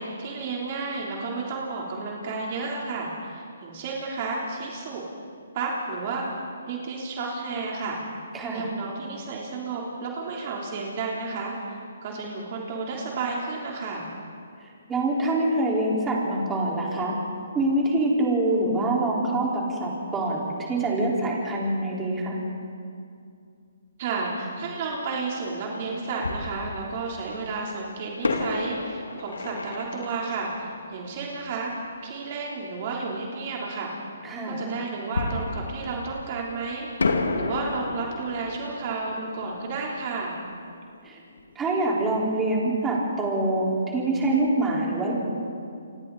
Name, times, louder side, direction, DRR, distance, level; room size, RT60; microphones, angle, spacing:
voice 1, 0.0-5.0 5.5-6.3 6.7-8.0 8.5-14.1 24.0-31.7 32.0-33.9 34.4-40.4, right 4 dB, 40° right, -3 dB, 3.5 m, -32 dB
voice 2, 8.3-8.7 14.6-17.2 17.5-22.4 34.2-34.6 41.0-41.2 41.5-45.1, right 2 dB, 10° right, -4 dB, 4.4 m, -25 dB
Fireworks, 24.9-25.0 26.2-27.3 28.2-31.7 35.1-36.6 37.0-41.5 41.8-41.9 42.4-42.6, left 3 dB, 85° left, 2.5 m, -32 dB
30.0 x 25.0 x 4.1 m, 2.4 s
hypercardioid pair, 150°, 0 cm